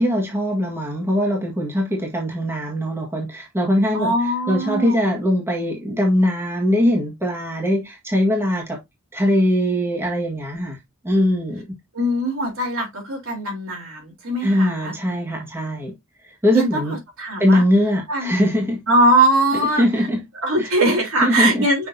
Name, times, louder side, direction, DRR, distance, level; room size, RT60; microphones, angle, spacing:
voice 1, 0.0-4.1 4.5-8.8 9.1-10.8 11.0-11.8 14.4-15.9 16.2-17.0 17.4-18.8 19.8-20.2 20.6-20.7 21.2-21.7, equal, 10° right, 1.7 m, -21 dB
voice 2, 3.9-5.0 11.9-14.9 16.5-17.6 18.1-18.3 18.9-20.1 20.4-21.9, right 1 dB, 65° right, 3.5 m, -21 dB
6.1 x 5.8 x 2.7 m
head